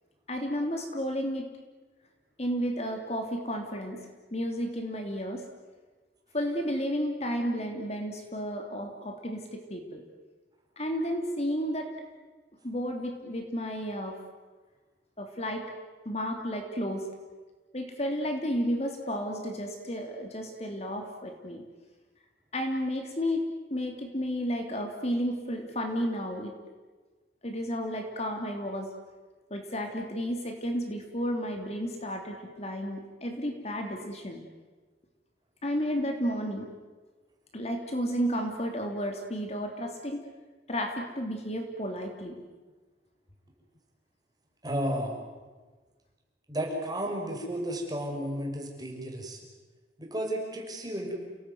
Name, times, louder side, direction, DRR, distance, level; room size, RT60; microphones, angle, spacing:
voice 1, 0.3-1.5 2.4-4.0 4.3-5.4 6.3-10.0 10.8-11.9 12.6-14.2 15.2-15.6 16.0-17.0 17.7-21.6 22.5-26.5 27.4-28.9 29.5-34.4 35.6-36.7 37.5-40.2 40.7-42.4, equal, 35° left, 3 dB, 3.1 m, -32 dB
voice 2, 44.6-45.2 46.5-49.4 50.0-51.2, right 1 dB, 20° right, 0 dB, 5.8 m, -33 dB
29.5 x 18.5 x 9.4 m, 1.3 s
head